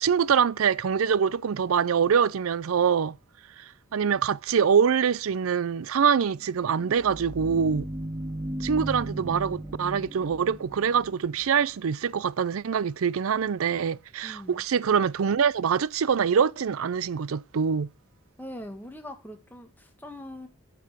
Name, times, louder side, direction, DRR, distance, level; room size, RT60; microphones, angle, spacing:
voice 1, 0.0-3.2 3.9-7.9 8.6-17.9, right 7 dB, 85° right, 0.4 m, -24 dB
sound 1, 6.4-11.8, right 1 dB, 15° right, 2.4 m, -36 dB
voice 2, 14.2-14.6 18.4-20.5, left 1 dB, 10° left, 1.7 m, -41 dB
8.3 x 7.0 x 6.1 m
head